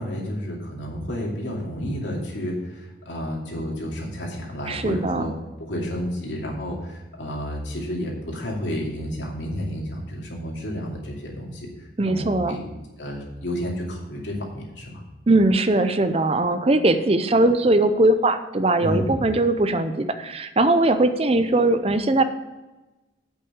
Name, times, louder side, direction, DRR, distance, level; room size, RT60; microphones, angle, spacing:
voice 1, 0.0-5.3 5.6-11.7 12.0-12.7 13.0-15.0 18.8-19.3, equal, 75° left, -2 dB, 2.6 m, -31 dB
voice 2, 4.7-5.2 12.0-12.6 15.3-22.2, right 2 dB, 30° right, 9 dB, 0.6 m, -20 dB
8.3 x 5.9 x 7.2 m, 1.1 s
head